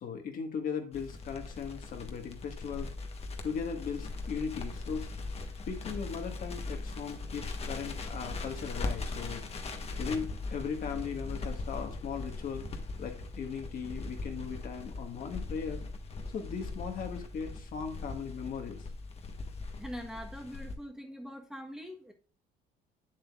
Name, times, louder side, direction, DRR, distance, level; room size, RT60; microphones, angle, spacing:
voice 1, 0.0-2.9 3.4-5.1 5.7-9.4 10.0-12.7 13.0-15.8 16.3-18.8, left 6 dB, 55° left, 4 dB, 1.7 m, -38 dB
Crackle, 0.9-20.7, left 3 dB, 35° left, 1.3 m, -40 dB
voice 2, 19.8-22.1, equal, 5° right, 3 dB, 1.2 m, -43 dB
8.2 x 7.5 x 2.4 m, 0.40 s
cardioid pair, 110°, 17 cm